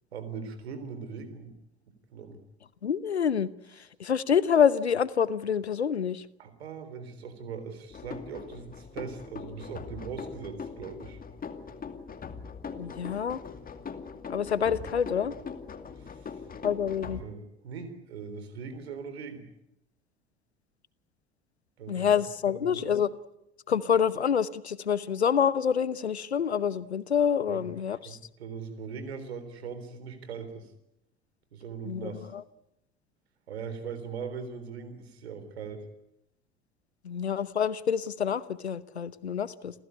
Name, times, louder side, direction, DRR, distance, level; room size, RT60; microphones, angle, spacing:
voice 1, 0.1-1.5 2.1-2.4 6.4-11.2 16.0-16.4 17.1-19.4 21.8-22.2 22.5-22.9 27.5-27.6 28.1-30.7 31.5-32.3 33.5-35.8, right 5 dB, 75° right, 9 dB, 3.8 m, -40 dB
voice 2, 2.8-3.5 4.0-6.3 12.8-13.4 14.3-15.3 16.6-17.2 21.9-23.1 23.7-28.2 31.9-32.4 37.0-39.7, left 7 dB, 85° left, 18 dB, 0.9 m, -27 dB
sound 1, 7.9-17.2, left 5 dB, 25° left, 2.4 m, -41 dB
28.5 x 15.5 x 9.8 m, 0.87 s
figure-of-eight pair, 65°, 32 cm